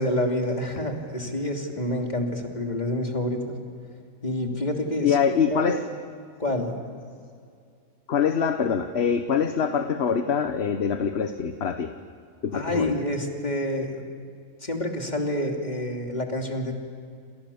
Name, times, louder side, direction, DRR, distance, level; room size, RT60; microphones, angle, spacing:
voice 1, 0.0-3.6 4.2-5.7 6.4-6.8 12.5-14.1 14.6-16.7, left 1 dB, 30° left, 2 dB, 3.1 m, -28 dB
voice 2, 5.0-5.8 8.1-11.9 12.4-12.9, left 6 dB, 50° left, 8 dB, 1.3 m, -24 dB
29.0 x 27.0 x 7.1 m, 2.3 s
omnidirectional pair, 1.4 m